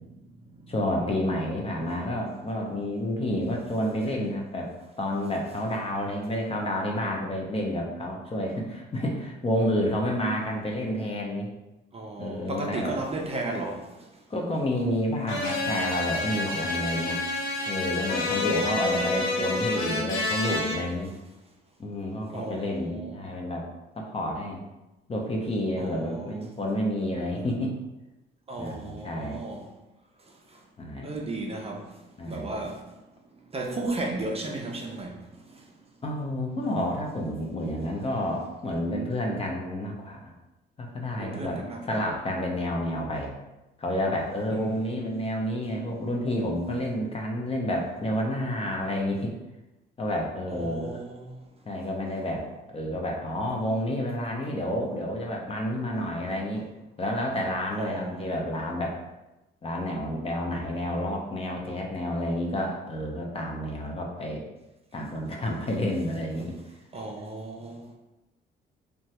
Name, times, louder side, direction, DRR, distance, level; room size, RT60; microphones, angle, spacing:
voice 1, 0.7-11.5 12.2-13.0 14.3-17.2 17.7-21.1 21.8-23.7 24.0-24.6 25.1-27.8 28.6-29.4 30.8-31.2 32.2-32.6 36.0-40.3 40.8-43.3 43.8-49.3 50.0-51.0 51.7-56.7 57.0-59.0 59.6-64.4 64.9-66.6, left 1 dB, 30° left, 0.6 m, -30 dB
voice 2, 11.9-14.1 16.9-17.2 17.5-17.7 18.5-19.1 22.3-23.1 25.8-26.5 28.5-29.7 30.5-30.6 31.0-32.0 32.3-32.8 33.5-35.6 41.2-42.0 44.5-45.0 50.5-51.4 57.8-58.3 66.9-68.0, right 2 dB, 30° right, 0.4 m, -35 dB
sound 1, 15.3-20.8, left 3 dB, 90° left, 0.7 m, -28 dB
2.9 x 2.2 x 2.8 m
cardioid pair, 90°, 20 cm